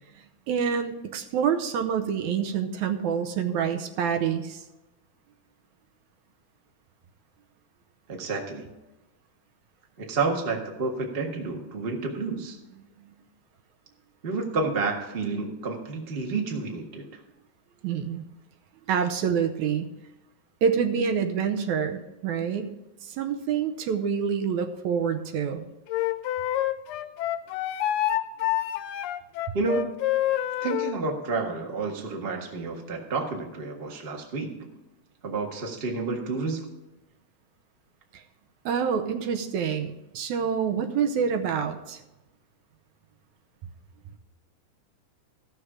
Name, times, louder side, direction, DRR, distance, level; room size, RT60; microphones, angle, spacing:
voice 1, 0.1-4.7 13.0-13.1 17.8-18.3 18.9-19.9 20.6-22.7 23.0-25.7 38.1-38.2 38.7-42.0, right 7 dB, 75° right, 7 dB, 2.1 m, -27 dB
voice 2, 8.1-8.7 10.0-12.6 14.2-17.0 29.5-29.9 30.6-34.7 35.2-36.7, right 3 dB, 30° right, 1 dB, 1.2 m, -30 dB
Wind instrument woodwind instrument, 25.9-31.0, left 13 dB, 80° left, 1.5 m, -27 dB
15.0 x 6.5 x 4.9 m, 1.0 s
omnidirectional pair, 3.5 m